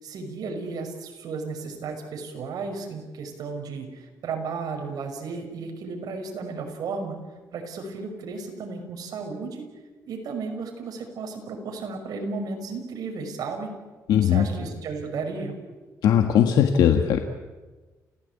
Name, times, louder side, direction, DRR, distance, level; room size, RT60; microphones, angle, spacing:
voice 1, 0.0-7.2 7.5-9.6 10.1-13.7 14.2-15.5, right 4 dB, 70° right, 3 dB, 5.7 m, -34 dB
voice 2, 14.1-14.5 16.0-17.2, left 9 dB, 85° left, 5 dB, 1.5 m, -19 dB
29.0 x 17.0 x 8.4 m, 1.3 s
cardioid pair, 110°, 7 cm